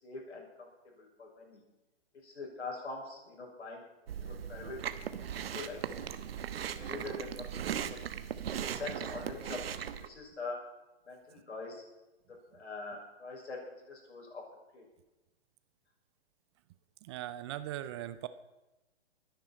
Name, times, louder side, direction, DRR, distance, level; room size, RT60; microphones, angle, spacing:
voice 1, 0.0-1.6 2.2-3.8 4.2-4.8 5.3-6.2 6.7-8.0 8.5-10.6 11.1-11.8 12.3-14.4 14.7-14.8, left 3 dB, 80° left, -1 dB, 6.5 m, -44 dB
Chewing mastication, 4.1-10.1, right 9 dB, 60° right, 1.2 m, -38 dB
voice 2, 17.0-18.3, right 13 dB, 25° right, 13 dB, 0.5 m, -39 dB
23.5 x 10.5 x 4.4 m, 1.0 s
hypercardioid pair, 130°, 33 cm